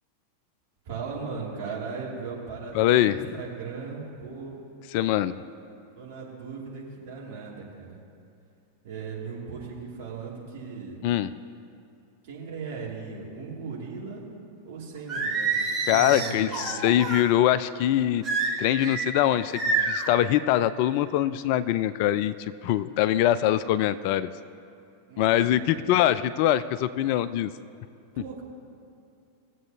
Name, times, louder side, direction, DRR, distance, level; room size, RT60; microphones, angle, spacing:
voice 1, 0.8-4.7 5.9-8.0 8.8-11.0 12.2-14.2 14.6-16.8 25.1-25.9 28.1-28.4, right 5 dB, 50° right, -5 dB, 2.6 m, -38 dB
voice 2, 2.7-3.3 4.9-5.4 11.0-11.3 15.9-18.2 18.6-22.3 22.6-24.3 25.2-27.5, left 12 dB, 45° left, 15 dB, 0.3 m, -23 dB
Singing, 15.1-17.3 18.2-19.1 19.5-20.1, right 4 dB, 20° right, 1.6 m, -27 dB
20.0 x 7.7 x 2.8 m, 2.5 s
figure-of-eight pair, 90°, 0 cm